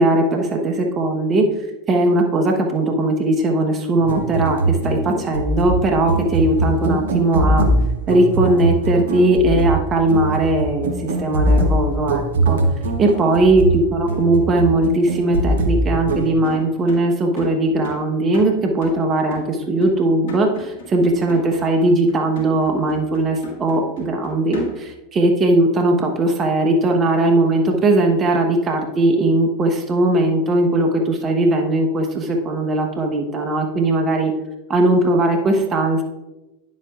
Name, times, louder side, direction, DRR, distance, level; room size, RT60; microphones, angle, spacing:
voice 1, 0.0-1.4 1.9-7.6 8.1-12.6 13.0-34.3 34.7-36.0, right 2 dB, 35° right, 3 dB, 1.2 m, -19 dB
sound 1, 4.0-16.3, right 1 dB, 80° right, 0.9 m, -22 dB
sound 2, 16.4-25.0, left 6 dB, 70° left, 2.1 m, -39 dB
9.7 x 7.5 x 2.5 m, 0.99 s
hypercardioid pair, 90°, 0 cm